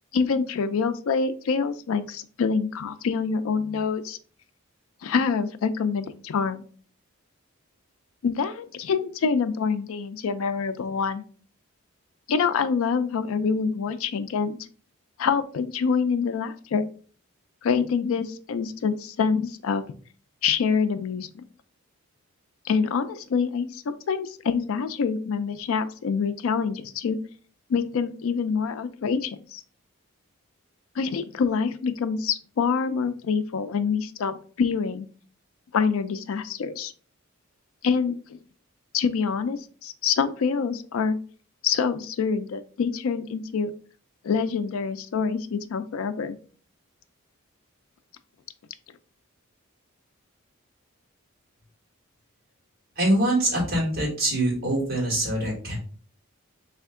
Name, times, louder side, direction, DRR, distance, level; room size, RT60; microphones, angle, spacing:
voice 1, 0.1-4.2 5.0-6.6 8.2-11.2 12.3-14.6 15.2-16.8 17.6-19.8 20.4-21.4 22.6-27.2 27.7-29.6 31.0-35.1 35.7-36.9 37.8-38.4 38.9-41.2 41.6-43.7 44.2-46.4, left 5 dB, 70° left, 11 dB, 0.3 m, -26 dB
voice 2, 52.9-55.8, right 1 dB, 45° right, -3 dB, 1.6 m, -24 dB
3.3 x 2.8 x 3.5 m, 0.42 s
head